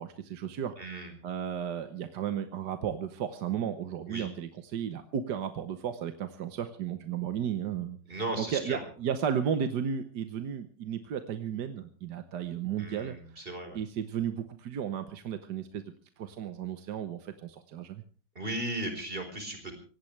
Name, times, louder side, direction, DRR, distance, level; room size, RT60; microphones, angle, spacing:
voice 1, 0.0-0.8 1.2-13.4 13.7-15.8 16.2-18.0, right 8 dB, 70° right, 8 dB, 1.6 m, -34 dB
voice 2, 0.8-1.1 4.1-4.3 8.1-8.8 12.8-13.8 18.3-19.7, right 1 dB, 30° right, 5 dB, 4.4 m, -36 dB
23.5 x 18.0 x 3.3 m, 0.41 s
omnidirectional pair, 1.9 m